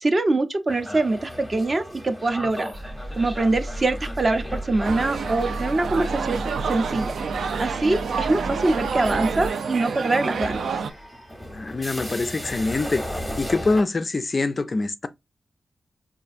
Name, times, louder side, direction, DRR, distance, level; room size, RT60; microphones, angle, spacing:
voice 1, 0.0-2.7 3.2-6.4 6.7-7.1 7.6-10.7, right 2 dB, 30° right, 0.5 m, -23 dB
sound 1, 0.7-13.8, left 1 dB, ahead, 0.7 m, -37 dB
sound 2, 2.7-9.5, equal, 70° right, 0.9 m, -35 dB
sound 3, 4.8-10.9, right 5 dB, 90° right, 0.4 m, -28 dB
voice 2, 11.5-15.1, left 3 dB, 30° left, 0.3 m, -25 dB
5.4 x 2.4 x 2.5 m
wide cardioid pair, 160°, 0 cm